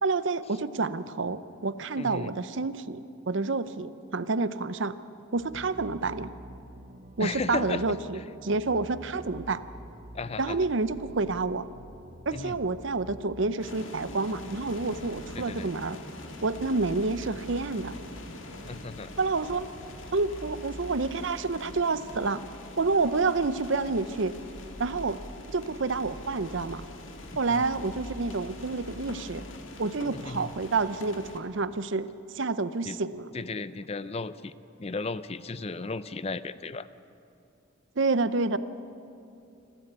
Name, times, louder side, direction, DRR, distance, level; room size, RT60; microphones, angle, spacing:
voice 1, 0.0-4.9 5.3-6.3 7.2-9.6 10.4-11.7 12.3-16.0 16.4-18.0 19.2-19.7 20.1-22.4 22.8-24.3 24.8-25.2 25.5-26.8 27.4-29.5 29.8-33.3 38.0-38.6, right 3 dB, 60° right, 14 dB, 0.7 m, -29 dB
voice 2, 2.0-2.3 7.2-7.8 8.1-8.2 10.1-10.6 12.3-12.6 15.4-15.7 18.7-19.1 27.5-27.7 30.2-30.5 32.9-33.0 33.3-34.5 34.8-36.9, left 3 dB, 30° left, 15 dB, 0.5 m, -35 dB
sound 1, 5.3-20.1, equal, 35° right, 1.2 m, -47 dB
sound 2, 13.6-31.4, left 1 dB, 70° left, 2.0 m, -43 dB
27.5 x 13.0 x 8.2 m, 2.6 s
head